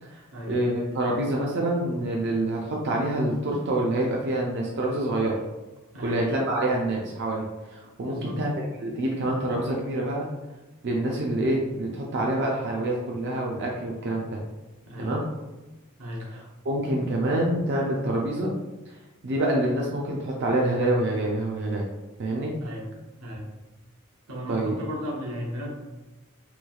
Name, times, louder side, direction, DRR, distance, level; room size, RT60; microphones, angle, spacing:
voice 1, 0.0-5.4 6.0-10.3 10.8-14.4 15.0-15.2 16.3-18.5 18.9-19.0 19.2-21.9 22.2-22.5 24.5-24.8, right 1 dB, 50° right, -2 dB, 0.4 m, -27 dB
voice 2, 5.9-6.2 8.0-8.4 14.9-15.2 16.0-16.3 22.6-22.9 23.2-23.5 24.3-25.7, equal, 85° right, -2 dB, 0.8 m, -34 dB
3.1 x 3.0 x 2.3 m, 1.1 s
head